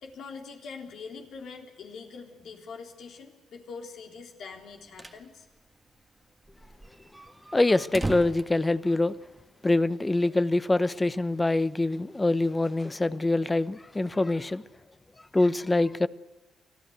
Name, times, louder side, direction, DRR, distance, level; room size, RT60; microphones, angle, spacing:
voice 1, 0.0-5.5, left 5 dB, 70° left, 3.6 m, -43 dB
sound 1, 4.6-5.3 5.6-5.7 5.9-6.0 6.5-9.5, right 2 dB, 15° right, 1.6 m, -38 dB
voice 2, 7.5-9.1 9.6-14.6 15.3-16.1, left 2 dB, 15° left, 0.9 m, -24 dB
25.0 x 15.0 x 8.0 m
cardioid pair, 90°, 0 cm